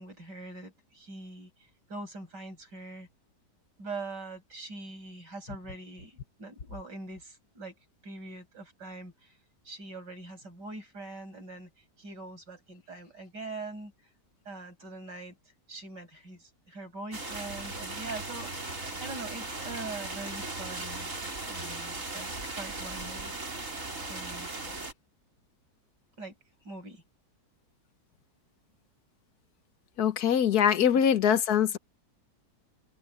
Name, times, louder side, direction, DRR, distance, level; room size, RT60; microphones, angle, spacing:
voice 1, 0.0-1.5 1.9-3.1 3.8-7.8 8.0-9.3 9.7-11.7 12.0-13.9 14.5-15.4 15.7-21.1 21.5-23.3 24.1-24.5 26.2-26.3 26.6-27.0 30.8-31.0, right 2 dB, 80° right, 7.6 m, -43 dB
sound 1, 17.1-24.9, right 2 dB, 45° right, 4.6 m, -38 dB
voice 2, 30.0-31.8, left 8 dB, 65° left, 1.6 m, -23 dB
omnidirectional pair, 1.8 m